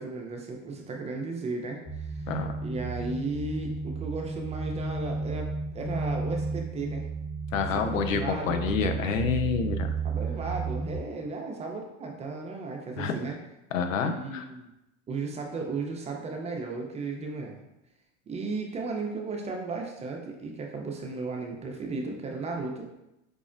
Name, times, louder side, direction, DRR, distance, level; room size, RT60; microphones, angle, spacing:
voice 1, 0.0-2.2 2.6-7.1 7.7-8.7 10.0-13.4 14.1-14.7 15.1-17.6 18.3-23.0, right 3 dB, 20° right, 1 dB, 0.4 m, -35 dB
sound 1, 1.9-11.0, right 4 dB, 35° left, 1.2 m, -33 dB
voice 2, 7.5-9.9 13.0-13.2 13.7-14.5, left 6 dB, 85° left, 7 dB, 0.5 m, -28 dB
5.1 x 2.0 x 2.4 m, 0.90 s
hypercardioid pair, 95°, 38 cm